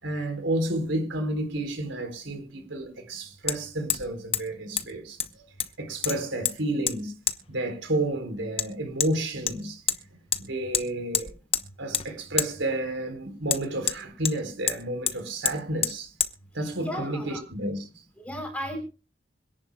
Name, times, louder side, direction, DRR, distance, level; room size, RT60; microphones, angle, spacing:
voice 1, 0.0-5.5 5.8-7.1 7.5-9.8 10.4-11.3 11.8-16.1 16.5-17.9, right 1 dB, 80° right, 4.0 m, -31 dB
Hammer, 1.6-1.7 3.5-3.6 3.9-4.1 4.3-4.4 4.8-4.9 5.2-5.7 6.0-6.6 6.9-7.0 7.3-7.4 8.6-8.7 9.0-9.1 9.5-10.0 10.3-10.4 10.7-10.9 11.1-11.7 11.9-12.1 12.4-12.5 13.5-14.4 14.7-14.8 15.1-15.2 15.5-15.6 15.8-16.3, left 9 dB, 30° left, 1.0 m, -27 dB
voice 2, 16.8-17.4 18.2-18.8, equal, 5° left, 3.7 m, -34 dB
25.5 x 10.5 x 2.3 m
head